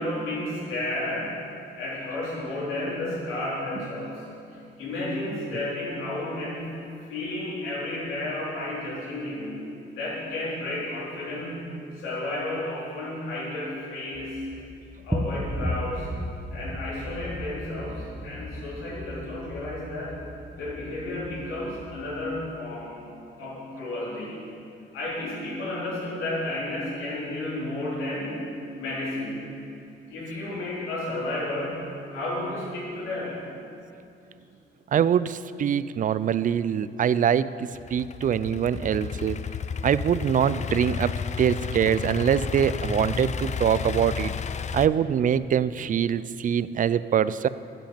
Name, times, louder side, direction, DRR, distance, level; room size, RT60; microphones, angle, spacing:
voice 1, 0.0-1.4 1.8-4.3 4.8-6.8 7.1-11.6 12.0-14.4 15.0-16.1 16.5-20.2 20.6-23.0 23.4-24.5 24.9-28.5 28.8-29.5 30.1-33.4, left 1 dB, 90° left, -7 dB, 3.7 m, -32 dB
sound 1, 14.1-22.5, equal, 5° right, 1.1 m, -35 dB
voice 2, 34.9-39.4 39.8-44.3 44.7-47.5, right 8 dB, 40° right, 16 dB, 0.4 m, -24 dB
Idling / Accelerating revving vroom, 37.7-44.9, left 6 dB, 35° left, 0.5 m, -32 dB
10.5 x 7.4 x 9.0 m, 2.6 s
cardioid pair, 90°, 20 cm